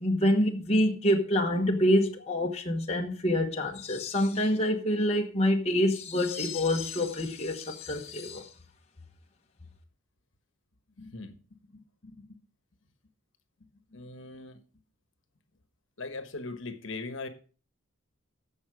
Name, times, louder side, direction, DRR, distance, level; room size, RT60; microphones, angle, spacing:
voice 1, 0.0-8.5, left 1 dB, 30° left, 1.1 m, -26 dB
voice 2, 11.0-11.3 12.0-12.3 13.9-14.6 16.0-17.3, left 3 dB, 60° left, 1.3 m, -39 dB
14.5 x 5.6 x 4.9 m
head